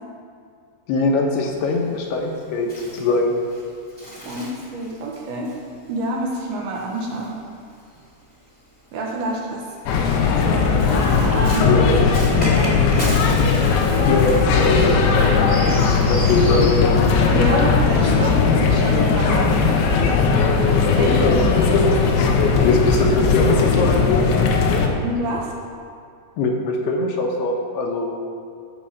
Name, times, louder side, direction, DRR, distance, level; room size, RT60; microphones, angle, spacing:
voice 1, 0.9-3.3 11.6-12.0 14.0-17.0 21.2-21.9 22.6-24.2 26.4-28.2, left 2 dB, 70° left, 1 dB, 2.8 m, -22 dB
Bird, 1.4-8.0 8.9-17.7, equal, 5° left, 1.4 m, -36 dB
voice 2, 4.2-5.5 5.9-7.4 8.9-9.7 10.4-13.0 13.7-14.0 17.3-19.7 20.9-21.2 25.0-25.5, right 1 dB, 70° right, -2 dB, 2.8 m, -28 dB
sound 1, 9.9-24.9, left 5 dB, 90° left, 3.4 m, -18 dB
14.5 x 5.5 x 7.2 m, 2.4 s
omnidirectional pair, 5.1 m